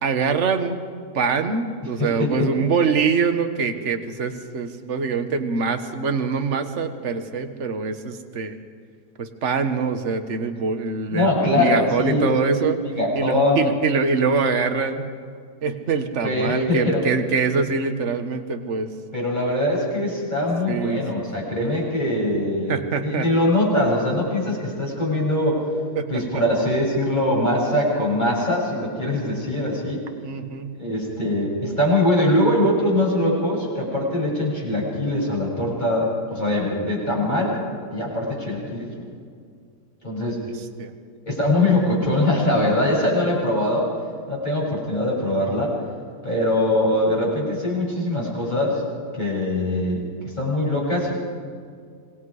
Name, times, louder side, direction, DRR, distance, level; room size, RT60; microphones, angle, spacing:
voice 1, 0.0-0.8 1.1-8.6 9.2-12.8 13.1-15.1 15.6-18.9 20.7-21.0 21.6-21.7 22.7-23.3 25.9-26.4 30.2-30.7 40.1-40.2 40.8-40.9 46.3-46.5, right 5 dB, 45° right, 7 dB, 1.6 m, -24 dB
voice 2, 2.0-2.5 11.1-12.3 12.5-13.6 16.2-17.0 19.1-25.6 26.1-30.0 30.8-37.6 37.9-38.9 40.0-40.4 41.3-43.9 44.3-45.7 46.2-48.8 49.1-50.0 50.4-51.2, left 1 dB, 25° left, -4 dB, 7.4 m, -22 dB
27.5 x 21.0 x 5.0 m, 2.2 s
omnidirectional pair, 1.7 m